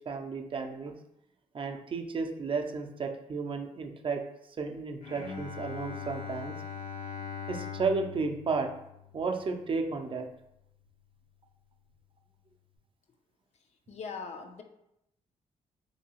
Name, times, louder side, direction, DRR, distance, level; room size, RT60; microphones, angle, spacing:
voice 1, 0.1-0.9 1.5-4.2 4.6-6.6 7.5-8.7 9.1-10.3, right 4 dB, 40° right, 3 dB, 0.4 m, -33 dB
Bowed string instrument, 5.0-10.3, left 7 dB, 80° left, 0.8 m, -42 dB
voice 2, 13.9-14.6, left 5 dB, 55° left, 5 dB, 0.4 m, -40 dB
2.7 x 2.6 x 2.8 m, 0.81 s
cardioid pair, 70°, 14 cm